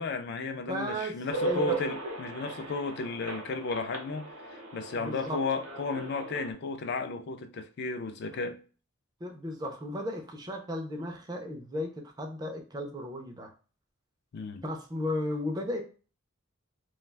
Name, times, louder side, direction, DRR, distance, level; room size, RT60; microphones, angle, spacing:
voice 1, 0.0-8.6 14.3-14.6, left 4 dB, 50° left, 0.3 m, -34 dB
voice 2, 0.7-1.1 1.4-1.8 5.0-5.4 9.2-13.5 14.6-15.8, left 1 dB, 20° right, 0.4 m, -35 dB
sound 1, 1.3-6.5, right 1 dB, 65° right, 0.7 m, -37 dB
2.3 x 2.2 x 3.2 m
head